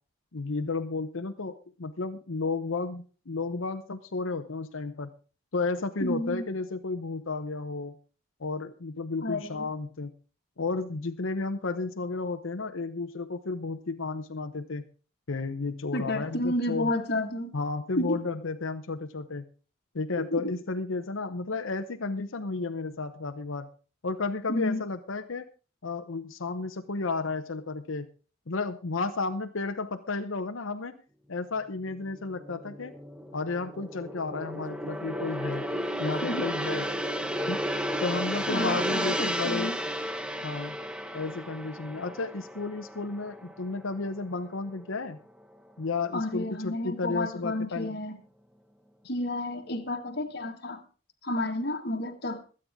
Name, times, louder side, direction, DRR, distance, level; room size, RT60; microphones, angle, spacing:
voice 1, 0.3-5.1 5.5-7.9 8.4-10.1 10.6-14.8 15.3-16.9 17.5-19.4 19.9-23.7 24.0-25.5 25.8-28.1 28.5-30.9 31.3-32.9 33.3-35.7 36.0-36.9 37.5-37.6 38.0-39.7 40.4-40.8 41.1-45.2 45.8-48.0, left 3 dB, 75° left, 6 dB, 0.8 m, -32 dB
voice 2, 6.0-6.4 9.2-9.7 15.9-17.5 18.0-18.2 20.1-20.5 24.5-24.8 36.2-36.5 38.5-39.8 46.1-48.2 49.0-50.8 51.2-52.4, left 1 dB, 50° left, 3 dB, 1.7 m, -31 dB
Gong, 31.9-44.4 44.7-45.0, equal, 5° right, 0.8 m, -33 dB
22.0 x 8.8 x 3.6 m, 0.37 s
head